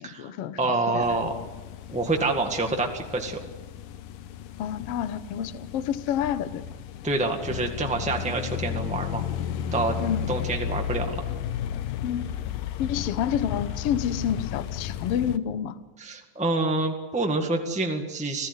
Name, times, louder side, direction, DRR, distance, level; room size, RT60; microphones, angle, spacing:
voice 1, 0.0-1.0 4.6-6.6 10.0-10.2 12.0-12.2 12.8-15.8, left 9 dB, 65° left, 13 dB, 1.5 m, -29 dB
voice 2, 0.6-1.3 1.9-3.4 7.0-9.2 9.7-9.9 10.3-11.1 16.0-18.5, right 2 dB, 5° right, 3 dB, 0.5 m, -27 dB
sound 1, 1.0-15.4, left 9 dB, 80° left, 2.6 m, -34 dB
26.5 x 16.5 x 9.7 m, 1.3 s
omnidirectional pair, 3.9 m